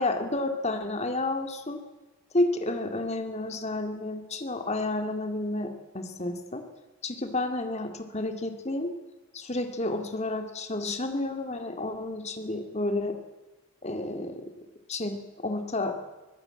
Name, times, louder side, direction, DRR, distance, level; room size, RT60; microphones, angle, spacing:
voice 1, 0.0-1.8 2.3-6.6 7.0-8.9 9.3-13.2 13.8-14.5 14.9-16.0, left 2 dB, 30° left, 6 dB, 2.1 m, -30 dB
24.5 x 15.5 x 8.9 m, 1.2 s
head